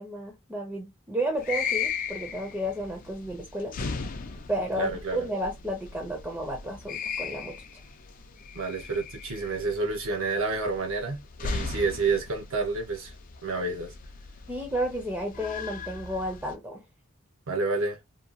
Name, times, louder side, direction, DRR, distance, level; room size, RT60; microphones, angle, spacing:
voice 1, 0.0-3.8 4.5-7.6 11.7-11.8 14.5-16.8, equal, 10° right, 0.5 m, -32 dB
sound 1, 1.4-16.5, left 5 dB, 40° left, 0.4 m, -37 dB
voice 2, 4.8-5.2 8.5-13.1 13.4-13.9 17.5-18.0, right 3 dB, 65° right, 0.6 m, -29 dB
2.8 x 2.2 x 2.4 m
head